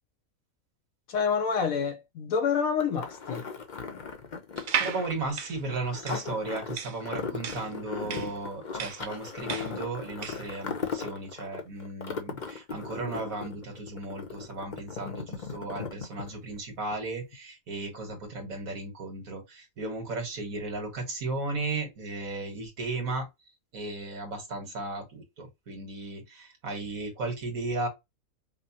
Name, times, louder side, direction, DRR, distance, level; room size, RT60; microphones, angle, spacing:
voice 1, 1.1-3.4, left 6 dB, 85° left, 1.2 m, -27 dB
sound 1, 2.8-16.6 16.9-17.0, left 5 dB, 45° left, 0.7 m, -38 dB
sound 2, 4.6-10.5, right 7 dB, 65° right, 0.4 m, -35 dB
voice 2, 4.8-23.3 23.7-27.9, right 2 dB, 85° right, 1.8 m, -35 dB
5.2 x 2.1 x 2.8 m
omnidirectional pair, 1.4 m